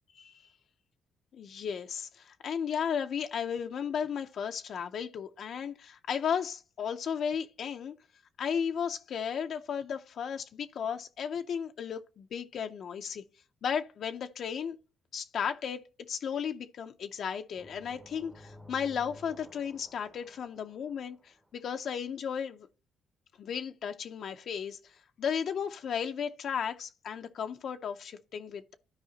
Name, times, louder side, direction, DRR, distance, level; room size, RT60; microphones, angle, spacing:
voice 1, 0.1-0.5 1.3-7.9 8.4-13.2 13.6-14.8 15.1-15.8 16.1-22.7 23.4-28.7, left 7 dB, 65° left, 0.5 m, -35 dB
sound 1, 17.6-21.4, left 1 dB, 10° right, 0.8 m, -53 dB
12.5 x 4.8 x 2.7 m
cardioid pair, 90°, 0 cm